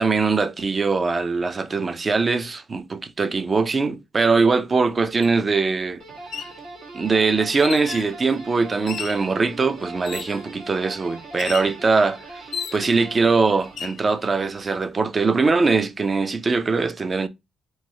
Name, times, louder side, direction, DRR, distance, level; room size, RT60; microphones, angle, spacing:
voice 1, 0.0-6.0 6.9-12.5 12.7-17.3, right 4 dB, 35° right, 0.4 m, -21 dB
sound 1, 5.2-5.3 6.2-6.6 7.6-8.1 8.9-9.3 10.0-10.5 11.4-11.7 12.5-13.1 13.6-14.0, left 7 dB, 65° left, 0.4 m, -33 dB
sound 2, 6.0-14.3, right 3 dB, 75° right, 1.6 m, -41 dB
3.0 x 2.7 x 2.7 m
cardioid pair, 90°, 0 cm